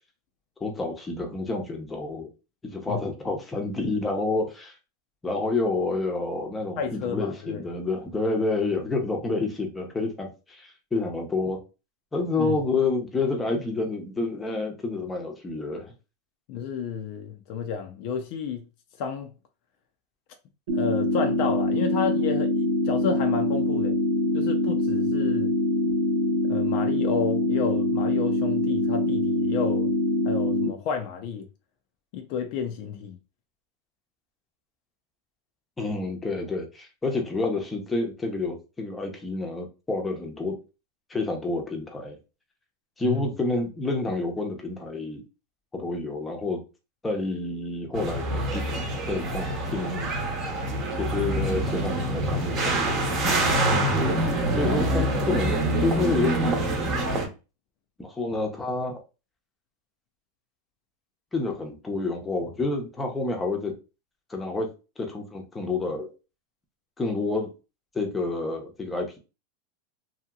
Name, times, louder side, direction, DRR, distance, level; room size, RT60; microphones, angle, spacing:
voice 1, 0.6-2.3 2.6-4.7 5.2-11.6 12.1-15.9 35.8-40.6 41.1-42.2 43.0-45.2 45.7-46.6 47.0-50.1 51.0-56.6 58.0-59.0 61.3-63.7 64.3-64.7 65.0-66.1 67.0-67.5 67.9-69.2, left 3 dB, 10° left, 0.7 m, -29 dB
voice 2, 6.8-7.6 12.4-12.6 16.5-18.6 19.0-19.3 20.7-24.0 24.3-25.5 26.5-29.9 30.2-31.5 32.1-33.2 43.0-43.2, left 6 dB, 55° left, 0.5 m, -31 dB
sound 1, 20.7-30.7, left 1 dB, 85° right, 1.1 m, -24 dB
sound 2, 47.9-57.3, right 1 dB, 35° right, 0.9 m, -26 dB
2.8 x 2.8 x 2.3 m
supercardioid pair, 135°, 0 cm